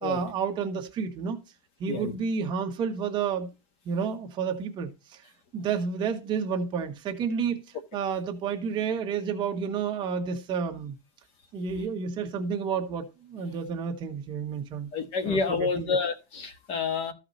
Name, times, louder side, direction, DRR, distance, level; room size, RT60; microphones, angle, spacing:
voice 1, 0.0-1.4 1.8-3.5 3.8-5.2 5.5-7.6 7.9-11.0 11.5-14.9 15.2-15.9, right 6 dB, 30° right, 1.3 m, -30 dB
voice 2, 14.9-17.1, left 5 dB, 35° left, 1.5 m, -28 dB
14.0 x 4.9 x 4.1 m
supercardioid pair, 165°, 17 cm